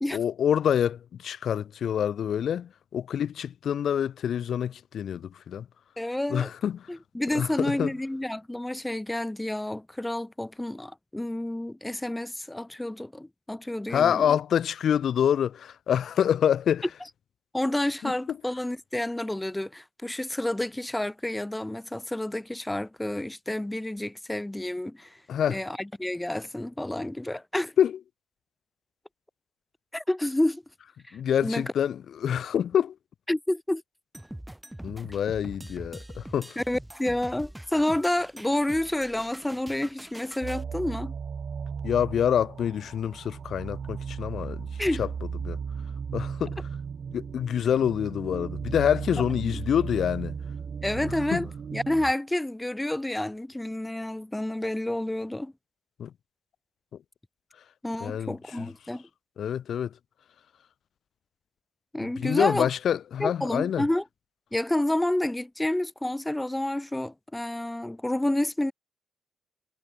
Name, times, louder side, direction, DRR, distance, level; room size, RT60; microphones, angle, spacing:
voice 1, 0.1-5.7 6.3-6.9 7.3-7.9 13.9-16.8 18.0-18.1 25.3-25.6 27.8-28.0 31.1-33.0 34.8-36.6 41.8-44.7 45.0-45.1 45.4-45.6 46.1-46.6 47.1-50.4 51.0-51.1 51.3-51.4 56.0-56.1 58.0-58.7 59.4-59.9 62.2-63.8, left 9 dB, 60° left, 1.8 m, -26 dB
voice 2, 6.0-6.5 6.9-14.4 17.5-25.2 25.5-27.7 29.9-30.6 31.1-31.7 33.3-33.8 36.6-41.1 44.8-45.0 49.4-49.6 50.8-55.5 57.8-59.1 61.9-62.7 63.2-64.0 64.5-68.7, left 1 dB, 10° left, 1.5 m, -29 dB
sound 1, 34.1-40.6, right 1 dB, 5° right, 3.6 m, -43 dB
sound 2, 40.4-52.1, right 6 dB, 45° right, 2.5 m, -36 dB
cardioid pair, 90°, 0 cm